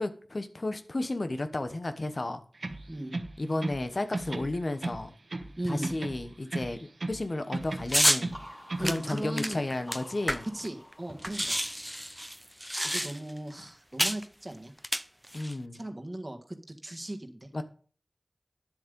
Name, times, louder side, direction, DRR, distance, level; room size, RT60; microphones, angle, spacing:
voice 1, 0.0-2.4 3.4-5.1 5.6-8.4 8.8-10.5 15.3-15.8 17.5-17.6, left 2 dB, 60° left, 1.0 m, -33 dB
sound 1, 2.5-3.9 4.1-5.6 5.8-7.2 7.5-8.9, right 2 dB, 80° right, 1.2 m, -36 dB
voice 2, 2.9-3.2 5.6-5.9 8.8-9.6 10.5-11.7 12.8-14.7 15.7-16.6 16.8-17.5, right 1 dB, 30° right, 1.6 m, -37 dB
sound 2, 7.5-13.1, left 1 dB, 35° left, 2.8 m, -50 dB
sound 3, 7.9-8.2 8.8-10.7 10.9-11.0 11.2-13.4 14.0-14.2 14.8-15.5, equal, 5° right, 0.6 m, -29 dB
10.0 x 7.5 x 5.2 m
wide cardioid pair, 45°, 0 cm